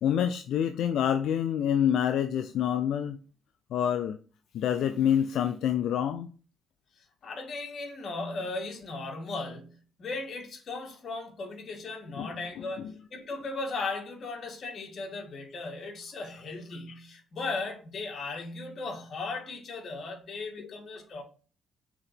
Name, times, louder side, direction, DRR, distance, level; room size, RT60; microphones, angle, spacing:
voice 1, 0.0-3.2 3.7-4.2 4.5-6.3 12.2-12.3, left 9 dB, 80° left, 0.4 m, -27 dB
voice 2, 7.2-21.2, left 3 dB, 55° left, 1.9 m, -37 dB
6.1 x 3.9 x 4.4 m
cardioid pair, 90°, 0 cm